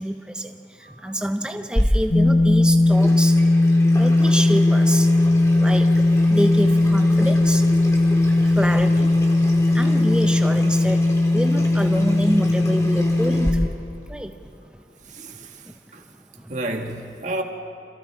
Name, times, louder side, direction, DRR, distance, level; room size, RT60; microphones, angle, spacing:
voice 1, 0.0-3.5 4.0-5.1 5.6-5.9 6.3-8.1 8.4-9.2 9.7-13.8 14.1-14.4 15.6-15.7 16.3-16.5, equal, 5° right, 6 dB, 0.9 m, -27 dB
Water tap faucet / Sink (filling or washing), 1.8-13.5, equal, 15° left, 2.6 m, -31 dB
sound 1, 2.1-13.7, left 2 dB, 45° left, 0.8 m, -18 dB
voice 2, 15.0-15.7 15.9-16.1 16.5-17.4, right 1 dB, 40° right, 3 dB, 1.7 m, -31 dB
28.5 x 27.5 x 4.8 m, 2.7 s
head